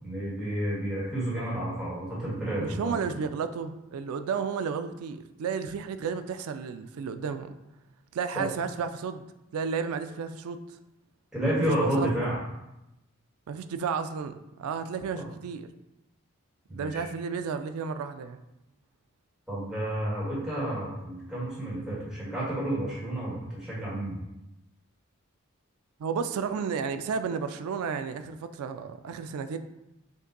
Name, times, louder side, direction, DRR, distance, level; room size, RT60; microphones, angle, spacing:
voice 1, 0.0-2.9 8.3-8.4 11.3-12.4 15.2-15.3 16.7-17.1 19.5-24.2, right 1 dB, 5° right, -9 dB, 1.5 m, -30 dB
voice 2, 2.6-7.5 8.1-9.2 9.5-10.6 11.7-12.1 13.5-15.7 16.7-18.4 26.0-29.6, right 6 dB, 85° right, 9 dB, 0.3 m, -32 dB
5.3 x 2.6 x 3.9 m, 0.91 s
head